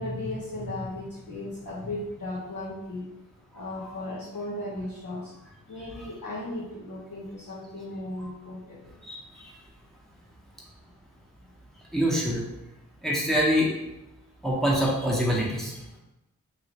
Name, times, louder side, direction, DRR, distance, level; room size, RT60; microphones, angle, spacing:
voice 1, 0.0-3.1 3.5-5.3 5.7-8.9, left 1 dB, 60° left, -7 dB, 0.9 m, -36 dB
voice 2, 9.0-9.5 11.9-12.4 13.0-13.7 14.4-15.7, equal, ahead, -4 dB, 1.0 m, -25 dB
3.1 x 2.7 x 2.8 m, 0.95 s
cardioid pair, 40°, 35 cm